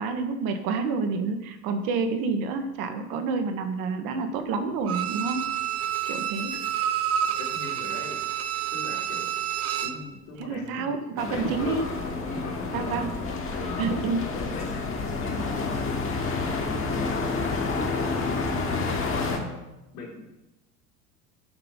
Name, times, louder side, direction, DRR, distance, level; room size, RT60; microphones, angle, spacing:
voice 1, 0.0-5.5 6.0-6.5 10.4-11.9 12.7-13.1 13.6-14.3, right 4 dB, 50° right, 7 dB, 1.4 m, -28 dB
Bowed string instrument, 4.9-10.1 10.4-10.5, right 10 dB, 35° right, 0.7 m, -29 dB
voice 2, 7.2-8.2 8.7-9.3 9.8-10.9 11.1-11.7 12.0-13.1 13.6-13.9 14.3-15.9 16.2-18.3 19.1-19.6 19.9-20.2, left 3 dB, 65° left, -6 dB, 3.0 m, -41 dB
sound 1, 11.2-19.4, left 3 dB, 30° left, 1.7 m, -29 dB
11.0 x 5.6 x 4.1 m, 0.95 s
figure-of-eight pair, 75°, 45 cm